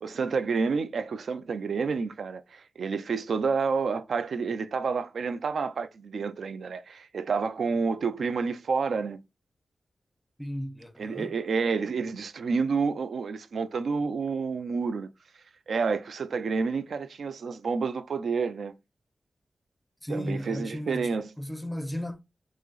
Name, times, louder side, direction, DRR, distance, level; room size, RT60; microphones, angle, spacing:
voice 1, 0.0-9.2 11.0-15.1 15.7-18.7 20.1-21.3, right 5 dB, 75° right, 0.4 m, -29 dB
voice 2, 10.4-11.3 20.0-22.3, equal, 5° left, 0.5 m, -35 dB
4.9 x 2.0 x 3.9 m
wide cardioid pair, 160°, 0 cm